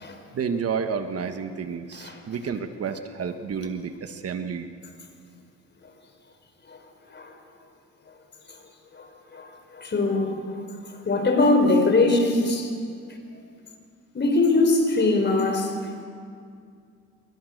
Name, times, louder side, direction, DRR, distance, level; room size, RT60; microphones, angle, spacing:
voice 1, 0.3-4.7, right 6 dB, 50° right, 8 dB, 1.5 m, -30 dB
voice 2, 9.7-10.4 11.0-12.7 14.1-15.7, left 2 dB, 35° left, 5 dB, 4.6 m, -21 dB
26.0 x 23.5 x 6.7 m, 2.2 s
cardioid pair, 90°, 30 cm